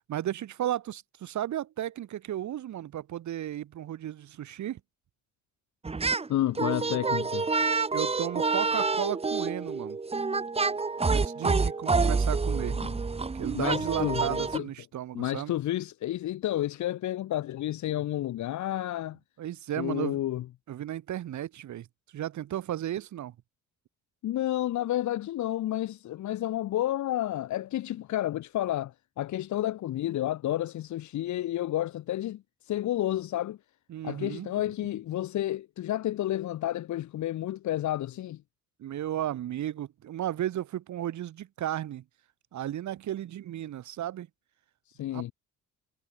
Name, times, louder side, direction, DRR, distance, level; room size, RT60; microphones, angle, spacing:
voice 1, 0.1-4.8 7.9-10.0 11.1-12.8 13.3-15.5 19.4-20.2 20.7-21.9 22.1-23.3 33.9-34.5 38.8-42.0 42.5-44.3 45.1-45.3, right 12 dB, 70° right, 2.4 m, -34 dB
sound 1, 5.8-6.3 6.6-14.6, right 4 dB, 20° right, 1.1 m, -28 dB
voice 2, 6.3-7.5 13.5-14.7 15.1-19.2 19.8-20.4 24.2-33.6 34.0-38.4 44.9-45.3, left 13 dB, 75° left, 1.3 m, -31 dB
cardioid pair, 90°, 30 cm